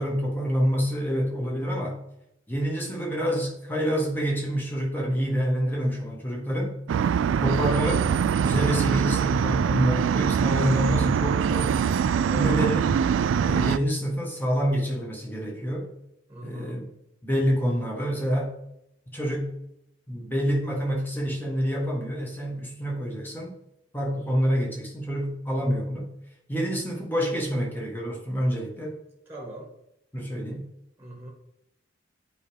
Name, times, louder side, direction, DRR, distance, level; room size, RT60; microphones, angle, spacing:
voice 1, 0.0-2.0 2.5-6.7 7.4-8.1 8.4-11.8 12.3-12.9 13.4-15.9 16.4-16.8 17.2-18.6 19.1-19.5 20.1-23.5 23.9-26.1 26.5-29.0 30.1-30.7, equal, 10° left, -1 dB, 1.4 m, -27 dB
sound 1, 6.9-13.8, right 7 dB, 85° right, 0.3 m, -23 dB
voice 2, 16.3-16.8 29.3-29.7 31.0-31.3, equal, 10° right, -1 dB, 1.6 m, -39 dB
8.4 x 4.9 x 3.4 m, 0.82 s
head